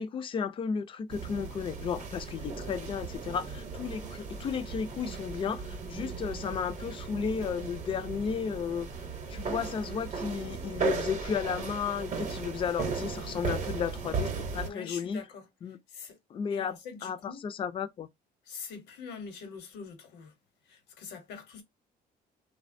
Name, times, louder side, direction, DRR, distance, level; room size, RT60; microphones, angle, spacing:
voice 1, 0.0-8.9 9.3-15.2 15.6-15.8 16.3-16.7 17.0-18.1, left 6 dB, 30° left, 0.4 m, -33 dB
sound 1, 1.1-14.7, right 5 dB, 40° right, 0.7 m, -36 dB
voice 2, 14.6-16.2 16.5-17.4 18.4-20.3 20.6-21.6, left 5 dB, 85° left, 0.9 m, -44 dB
3.1 x 2.2 x 2.5 m
cardioid pair, 135°, 17 cm